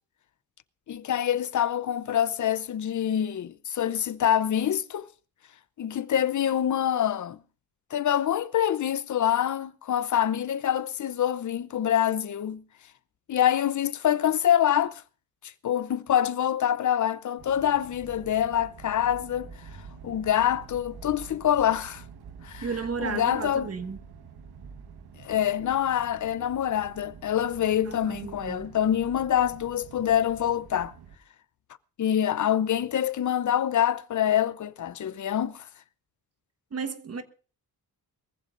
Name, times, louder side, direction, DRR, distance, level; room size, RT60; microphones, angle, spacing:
voice 1, 0.9-5.1 5.8-7.4 7.9-12.6 13.3-15.0 15.4-19.5 20.0-22.0 22.4-22.7 23.0-23.7 25.2-30.9 32.0-35.7, left 10 dB, 50° left, 0.7 m, -25 dB
sound 1, 17.4-31.2, right 6 dB, 75° right, 1.4 m, -47 dB
voice 2, 22.6-24.0 27.8-28.7 36.7-37.2, right 5 dB, 40° right, 1.4 m, -33 dB
23.0 x 15.0 x 2.6 m
cardioid pair, 120°, 38 cm